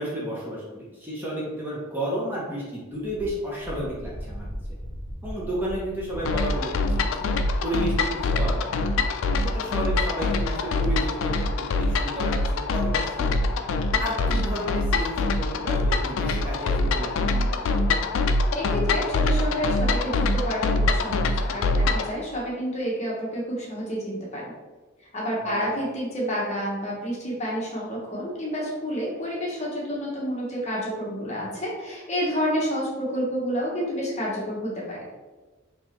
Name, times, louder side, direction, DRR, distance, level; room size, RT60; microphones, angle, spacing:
voice 1, 0.0-4.5 5.2-7.3 7.6-8.9 9.4-13.4 14.0-17.8 25.4-25.7, right 1 dB, 10° right, -6 dB, 0.6 m, -32 dB
Wind, 3.0-8.3, equal, 85° right, 0.9 m, -38 dB
sound 1, 6.3-22.1, left 2 dB, 65° left, 0.3 m, -24 dB
voice 2, 18.5-21.3 21.5-24.4 25.1-35.0, equal, 35° left, -5 dB, 1.0 m, -29 dB
3.6 x 2.9 x 2.9 m, 1.2 s
head